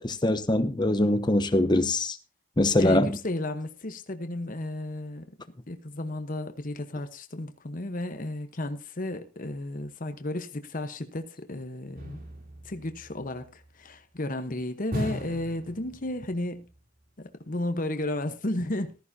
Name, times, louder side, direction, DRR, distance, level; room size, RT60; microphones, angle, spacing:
voice 1, 0.0-2.2 2.6-3.2, left 1 dB, 20° left, 0.8 m, -23 dB
voice 2, 2.8-5.2 5.7-12.2 12.6-16.6 17.2-18.9, left 1 dB, 45° left, 1.0 m, -33 dB
sound 1, 12.0-13.6 14.9-16.4 16.7-16.8, left 1 dB, 45° right, 3.1 m, -37 dB
14.5 x 14.0 x 2.8 m
head